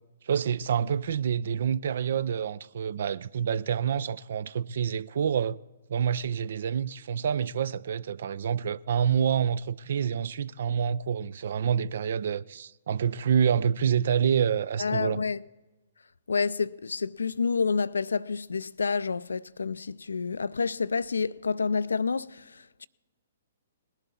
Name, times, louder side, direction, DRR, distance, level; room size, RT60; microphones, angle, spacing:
voice 1, 0.2-5.6 5.9-15.2, right 8 dB, 55° right, 0.4 m, -27 dB
voice 2, 14.8-15.4 16.3-22.9, left 5 dB, 75° left, 0.3 m, -29 dB
19.5 x 11.0 x 4.1 m
figure-of-eight pair, 120°, 0 cm